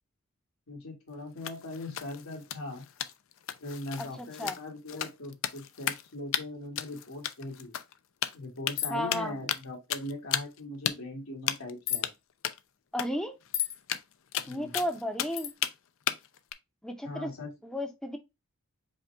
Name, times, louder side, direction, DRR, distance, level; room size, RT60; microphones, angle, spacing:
voice 1, 0.7-2.8 3.6-7.7 8.3-12.1 14.4-14.8 17.0-17.5, left 2 dB, 85° left, 1.9 m, -40 dB
sound 1, 1.4-6.1 6.3-6.4 6.8-7.9 8.2-8.8 9.1-9.6 9.9-10.6 10.8-10.9 11.5-11.7 12.0-12.1 12.4-12.6 13.0-13.1 13.4-13.5 13.8-15.7 16.1-16.5, left 10 dB, 65° left, 0.5 m, -34 dB
voice 2, 4.0-4.6 8.9-9.3 12.9-13.3 14.5-15.5 16.8-17.3 17.6-18.2, left 1 dB, 5° left, 0.6 m, -33 dB
sound 2, 8.8-9.1 11.9-12.1 13.5-13.8 15.4-15.5, left 11 dB, 45° left, 0.8 m, -32 dB
5.1 x 2.4 x 4.4 m
head